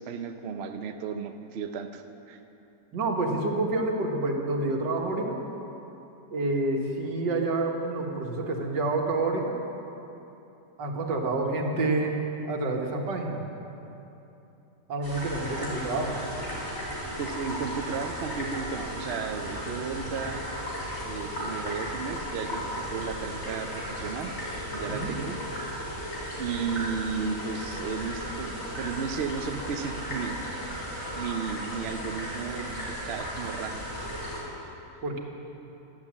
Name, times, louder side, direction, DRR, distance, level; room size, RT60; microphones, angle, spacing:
voice 1, 0.0-2.4 17.2-20.4 21.0-24.3 24.7-25.4 26.4-30.4 31.1-33.8, right 6 dB, 60° right, 6 dB, 0.7 m, -34 dB
voice 2, 2.9-5.4 6.3-9.6 10.8-12.2 12.5-13.4 14.9-16.2 24.9-25.1 35.0-35.2, right 2 dB, 80° right, 1 dB, 2.0 m, -28 dB
sound 1, 15.0-34.4, equal, 55° left, 3.7 m, -35 dB
11.5 x 11.0 x 7.3 m, 2.9 s
omnidirectional pair, 1.9 m